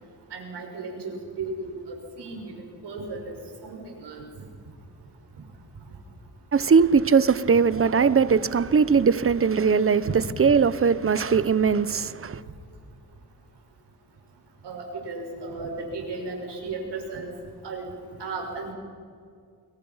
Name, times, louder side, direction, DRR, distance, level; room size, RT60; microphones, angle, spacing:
voice 1, 0.3-2.5 2.8-3.3 3.6-4.2 14.6-17.3 17.6-17.9 18.2-18.7, right 3 dB, 90° right, 6.0 m, -35 dB
voice 2, 6.5-10.1 10.4-12.4, right 5 dB, 35° right, 0.9 m, -20 dB
29.5 x 22.5 x 5.7 m
cardioid pair, 105°, 40 cm